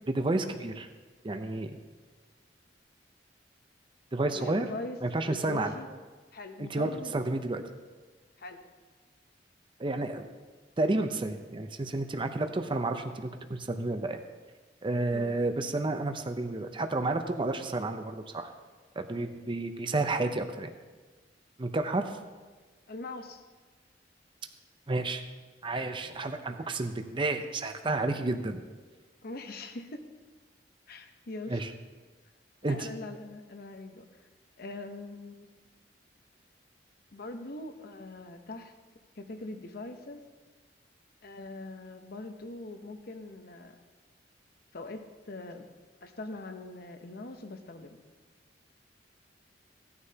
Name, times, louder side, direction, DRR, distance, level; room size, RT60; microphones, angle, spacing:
voice 1, 0.1-0.9 1.2-1.8 4.1-4.7 5.0-5.7 6.6-7.6 9.8-10.2 10.8-14.2 14.8-18.5 19.0-20.7 21.6-22.2 24.9-25.2 25.6-28.6 31.5-31.7 32.6-32.9, right 2 dB, 30° right, 6 dB, 0.6 m, -31 dB
voice 2, 4.3-5.0 5.2-5.9 6.3-7.1 8.4-8.6 15.1-15.3 22.9-23.4 29.2-30.0 30.9-31.6 32.7-34.2 34.6-35.5 37.1-38.7 39.2-40.2 41.2-43.7 44.7-45.7 46.0-48.0, left 2 dB, 55° left, 7 dB, 0.9 m, -42 dB
16.5 x 9.6 x 2.8 m, 1.3 s
head